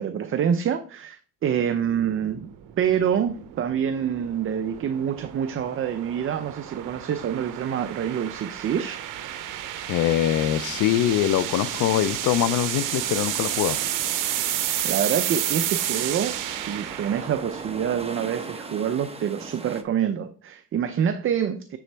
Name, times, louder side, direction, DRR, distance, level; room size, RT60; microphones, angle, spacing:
voice 1, 0.0-2.5 2.8-9.0 14.8-21.8, right 8 dB, 40° right, 0.5 m, -26 dB
sound 1, 1.8-18.1, right 12 dB, 75° right, 0.8 m, -31 dB
voice 2, 9.9-13.8, left 12 dB, 75° left, 0.6 m, -23 dB
sound 2, 10.3-19.8, right 3 dB, 20° right, 0.9 m, -41 dB
9.2 x 4.1 x 3.4 m
cardioid pair, 100°, 32 cm